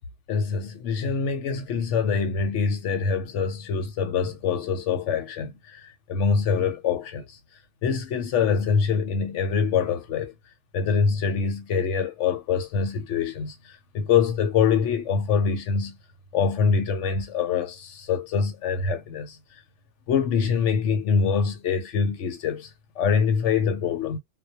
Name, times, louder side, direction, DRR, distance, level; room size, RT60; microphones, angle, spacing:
voice 1, 0.3-5.8 6.1-7.2 7.8-10.3 10.7-13.5 13.9-16.0 16.3-19.4 20.1-22.7 23.0-24.2, left 6 dB, 75° left, 0.9 m, -24 dB
2.2 x 2.1 x 2.8 m
omnidirectional pair, 1.3 m